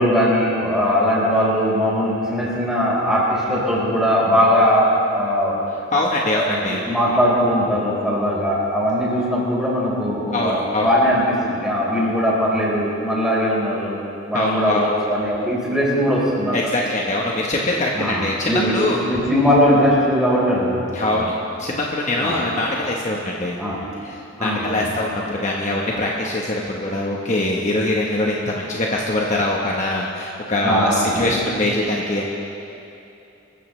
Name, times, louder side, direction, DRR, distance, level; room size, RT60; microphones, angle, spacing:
voice 1, 0.0-6.0 6.3-14.0 14.3-16.6 17.9-18.7 19.1-21.3 22.2-22.4 23.6-23.8 24.4-24.9 30.6-31.4, equal, 5° right, -7 dB, 4.5 m, -20 dB
voice 2, 5.9-6.8 10.3-10.9 14.3-14.8 16.5-19.0 20.9-21.3 21.6-23.6 24.0-32.3, left 1 dB, 40° left, -2 dB, 1.2 m, -23 dB
25.0 x 14.0 x 3.3 m, 2.8 s
head